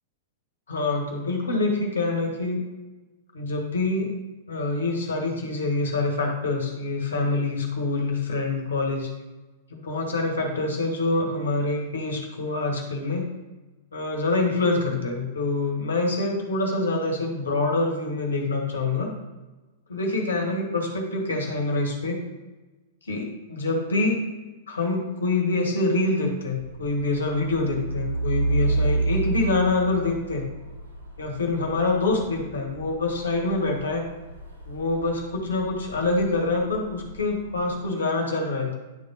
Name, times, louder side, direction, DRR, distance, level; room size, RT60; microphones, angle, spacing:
voice 1, 0.7-2.6 3.3-4.1 4.5-9.1 9.7-13.3 13.9-19.1 19.9-22.2 23.0-24.2 24.7-30.5 31.2-34.0 34.6-38.7, left 2 dB, 75° left, 1 dB, 1.5 m, -26 dB
Truck, 26.5-37.8, right 3 dB, 80° right, 1.2 m, -31 dB
10.5 x 3.6 x 4.1 m, 1.2 s
figure-of-eight pair, 100°, 0 cm